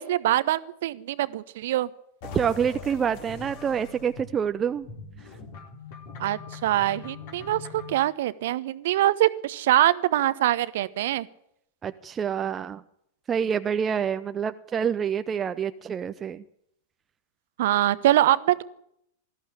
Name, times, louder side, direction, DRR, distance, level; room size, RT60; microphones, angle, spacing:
voice 1, 0.0-1.9 6.2-11.3 17.6-18.6, right 14 dB, 55° right, 16 dB, 1.0 m, -24 dB
sound 1, 2.2-8.0, left 4 dB, 50° left, 3.7 m, -42 dB
voice 2, 2.3-4.9 11.8-12.8 13.3-16.4, right 7 dB, 20° right, 10 dB, 0.8 m, -27 dB
20.0 x 14.0 x 10.0 m, 0.76 s
figure-of-eight pair, 90°, 0 cm